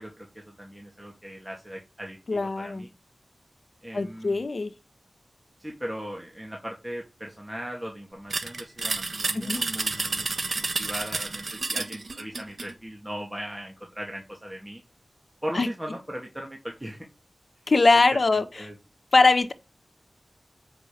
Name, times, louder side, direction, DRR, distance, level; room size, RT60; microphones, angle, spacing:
voice 1, 0.0-2.9 3.8-4.5 5.6-14.8 15.4-17.1 18.3-18.7, equal, 10° right, 2.3 m, -38 dB
voice 2, 2.3-2.9 3.9-4.7 9.3-9.6 15.5-15.7 17.7-18.4 19.1-19.5, left 3 dB, 60° left, 1.2 m, -21 dB
sound 1, 8.3-12.7, right 3 dB, 65° right, 1.2 m, -30 dB
8.3 x 5.4 x 6.6 m
wide cardioid pair, 85°, 0 cm